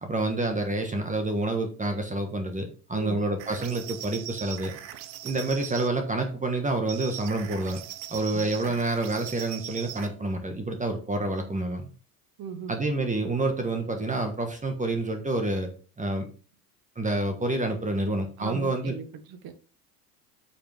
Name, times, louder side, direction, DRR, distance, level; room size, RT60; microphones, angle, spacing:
voice 1, 0.0-4.7 5.2-7.8 8.1-11.9 12.7-15.7 16.0-16.3 16.9-18.9, right 2 dB, 15° right, 1.5 m, -28 dB
sound 1, 3.4-5.9 6.9-10.2, right 13 dB, 70° right, 1.0 m, -40 dB
voice 2, 8.3-8.8 12.4-12.8 18.4-19.6, right 7 dB, 50° right, 1.5 m, -38 dB
8.6 x 5.5 x 3.6 m
hypercardioid pair, 80°, 48 cm